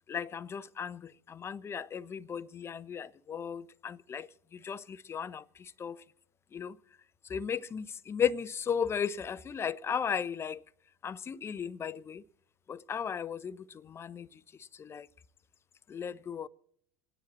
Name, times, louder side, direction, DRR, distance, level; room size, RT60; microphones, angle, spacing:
voice 1, 0.1-6.0 6.5-6.8 7.2-10.6 11.0-12.2 12.7-15.1 15.9-16.5, left 7 dB, 30° left, 0.6 m, -36 dB
28.5 x 9.7 x 4.1 m
hypercardioid pair, 75°, 8 cm